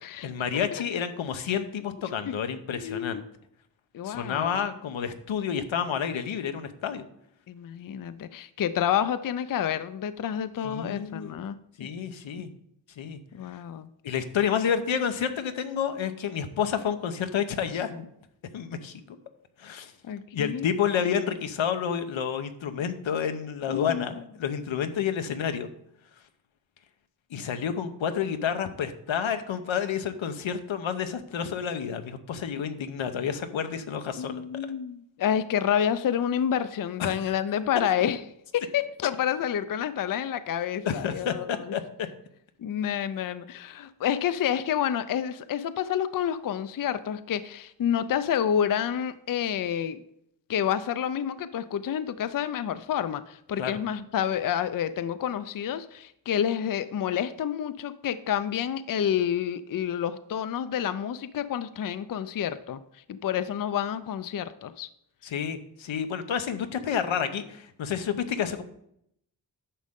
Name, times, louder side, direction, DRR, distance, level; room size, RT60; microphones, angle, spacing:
voice 1, 0.2-3.2 4.0-7.0 10.6-11.4 11.8-12.5 13.0-13.2 14.0-18.1 18.5-19.2 19.6-19.9 20.3-25.7 27.3-34.4 37.0-37.1 40.8-42.1 53.6-53.8 65.2-68.6, left 8 dB, 90° left, 8 dB, 0.9 m, -30 dB
voice 2, 2.7-3.3 3.9-4.7 7.5-11.6 12.4-12.5 13.3-13.9 20.0-20.7 23.7-24.1 34.2-38.2 38.5-41.7 42.6-50.0 50.5-62.8 63.1-64.9, left 9 dB, 50° left, 13 dB, 0.5 m, -29 dB
10.0 x 6.4 x 3.6 m, 0.74 s
wide cardioid pair, 115°, 46 cm